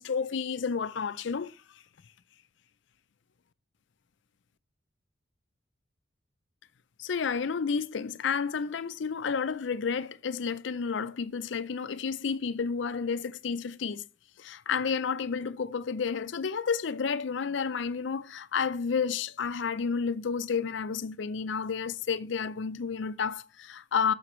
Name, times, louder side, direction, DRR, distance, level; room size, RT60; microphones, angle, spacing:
voice 1, 0.0-1.6 7.0-14.0 14.4-24.1, left 6 dB, 75° left, 0.5 m, -31 dB
12.5 x 5.9 x 3.1 m
head